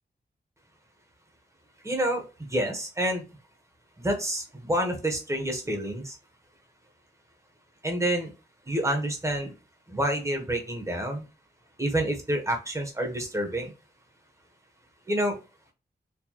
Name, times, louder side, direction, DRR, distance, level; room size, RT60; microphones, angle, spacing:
voice 1, 1.8-2.2 2.5-3.2 4.0-6.2 7.8-8.3 8.7-9.5 9.9-11.2 11.8-13.7 15.1-15.4, right 1 dB, 15° right, 2 dB, 1.2 m, -28 dB
4.5 x 2.6 x 2.9 m, 0.31 s
wide cardioid pair, 105°, 18 cm